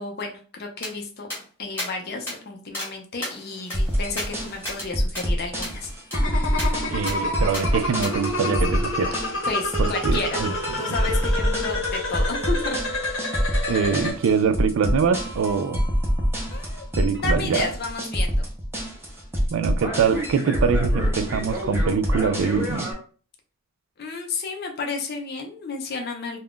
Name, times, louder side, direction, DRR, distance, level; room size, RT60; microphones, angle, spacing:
voice 1, 0.0-5.9 9.5-10.4 10.8-12.8 16.5-16.9 17.1-18.5 24.0-26.4, left 3 dB, 45° left, 0.5 m, -32 dB
sound 1, 0.8-0.9 1.3-1.4 1.8-1.9 2.3-2.4 2.7-2.9 3.2-4.9 5.1-5.3 5.6-5.8 6.1-6.2 6.6-6.7 7.1-7.2 7.5-7.6 8.0-8.1, left 1 dB, 10° left, 1.0 m, -33 dB
sound 2, 3.7-22.9, equal, 10° right, 0.6 m, -26 dB
sound 3, 6.1-14.1, left 1 dB, 65° left, 0.9 m, -29 dB
voice 2, 6.9-9.2 10.0-10.5 13.7-15.8 17.0-17.7 19.5-22.9, right 6 dB, 70° right, 0.3 m, -23 dB
2.4 x 2.3 x 3.5 m
head